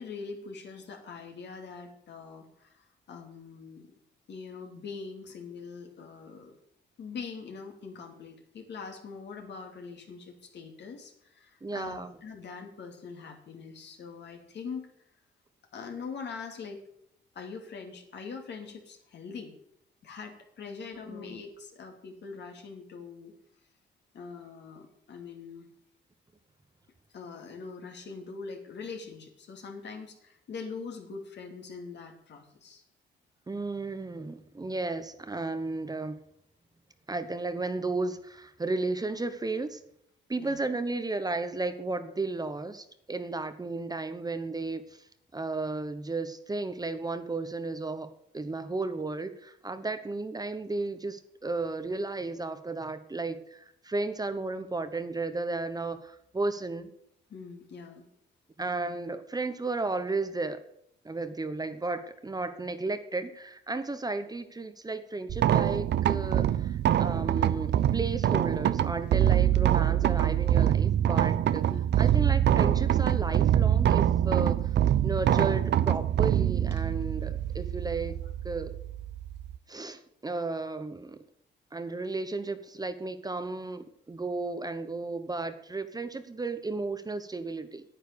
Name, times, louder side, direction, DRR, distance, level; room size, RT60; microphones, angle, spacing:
voice 1, 0.0-3.9 4.3-6.5 7.0-14.9 15.7-16.8 17.3-19.5 20.0-23.3 24.1-25.7 27.1-32.8 40.4-40.6 57.3-58.1 71.7-72.1, left 5 dB, 60° left, 3 dB, 2.8 m, -43 dB
voice 2, 11.6-12.1 21.1-21.4 33.5-36.2 37.1-39.8 40.3-45.1 45.3-48.1 48.3-56.9 58.6-60.6 61.0-71.6 72.0-74.8 75.0-78.2 78.4-78.7 79.7-81.2 81.7-87.8, right 3 dB, 20° right, 10 dB, 1.0 m, -34 dB
sound 1, 65.3-79.6, right 11 dB, 60° right, 0.6 m, -25 dB
9.7 x 9.0 x 6.9 m, 0.73 s
cardioid pair, 90°, 20 cm